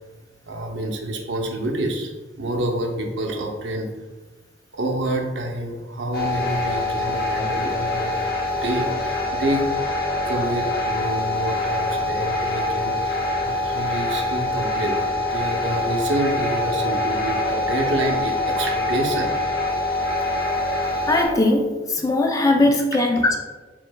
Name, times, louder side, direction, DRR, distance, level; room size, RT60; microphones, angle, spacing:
voice 1, 0.5-3.9 4.7-8.2 8.5-9.6 10.2-19.3 23.1-23.2, right 1 dB, 80° right, 2 dB, 0.7 m, -27 dB
sound 1, 6.1-21.3, left 2 dB, 55° left, 0.8 m, -24 dB
voice 2, 21.1-23.4, left 2 dB, 20° left, 3 dB, 0.4 m, -19 dB
4.8 x 3.7 x 2.2 m, 1.2 s
head